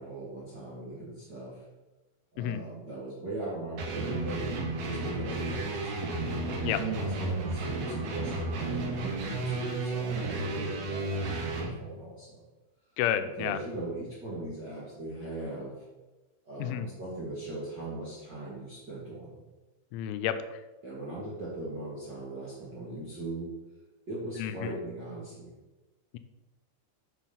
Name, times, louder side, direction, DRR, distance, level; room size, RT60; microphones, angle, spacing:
voice 1, 0.0-1.6 2.3-6.1 6.8-12.5 13.4-15.7 16.4-19.3 20.8-23.5 24.1-25.5, right 2 dB, 80° right, -7 dB, 0.9 m, -40 dB
sound 1, 3.8-11.7, right 2 dB, 60° right, 2.4 m, -32 dB
voice 2, 13.0-13.6 16.6-16.9 19.9-20.4 24.4-24.5, left 11 dB, 85° left, 10 dB, 3.0 m, -30 dB
9.1 x 6.1 x 5.7 m, 1.1 s
omnidirectional pair, 5.5 m